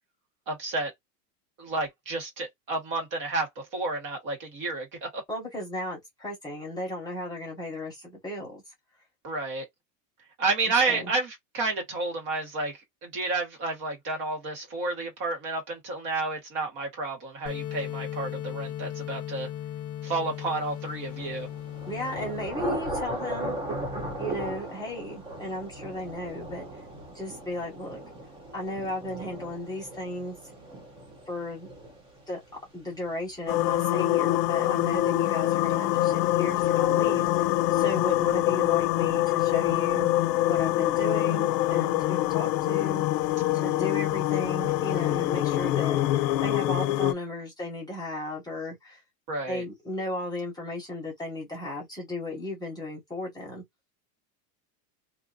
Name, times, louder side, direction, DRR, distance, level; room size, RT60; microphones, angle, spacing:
voice 1, 0.5-0.9 1.6-3.5 3.7-5.2 9.2-9.6 10.4-12.7 13.0-19.5 20.0-21.5 49.3-49.6, right 3 dB, 40° right, 1.7 m, -30 dB
voice 2, 5.3-8.6 10.6-11.1 21.8-23.6 24.2-26.8 27.1-28.0 28.5-30.4 31.3-31.7 32.3-32.4 32.7-40.1 40.5-43.0 43.5-46.0 46.4-49.0 49.5-53.6, left 1 dB, 10° left, 1.2 m, -35 dB
sound 1, 17.5-22.5, left 11 dB, 45° left, 1.0 m, -37 dB
Thunder / Rain, 21.0-32.6, right 1 dB, 10° right, 0.4 m, -37 dB
sound 2, 33.5-47.1, left 15 dB, 85° left, 0.6 m, -25 dB
2.8 x 2.5 x 2.4 m
supercardioid pair, 155°, 49 cm